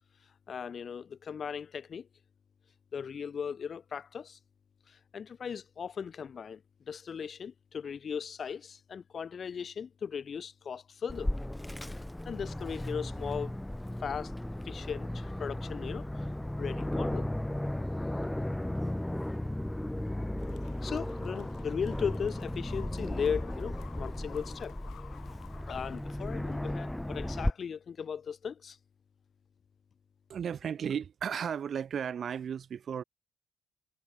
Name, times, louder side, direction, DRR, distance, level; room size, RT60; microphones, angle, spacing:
voice 1, 0.5-2.1 2.9-4.4 4.9-11.3 11.9-13.6 14.0-14.3 14.6-16.3 16.6-17.3 20.8-24.7 25.7-28.8, left 7 dB, 50° left, 1.8 m, -37 dB
Aircraft, 11.1-27.5, left 1 dB, 5° left, 1.5 m, -35 dB
sound 1, 20.4-26.4, left 12 dB, 75° left, 6.8 m, -54 dB
voice 2, 30.3-33.0, right 8 dB, 55° right, 4.5 m, -34 dB
cardioid pair, 90°, 0 cm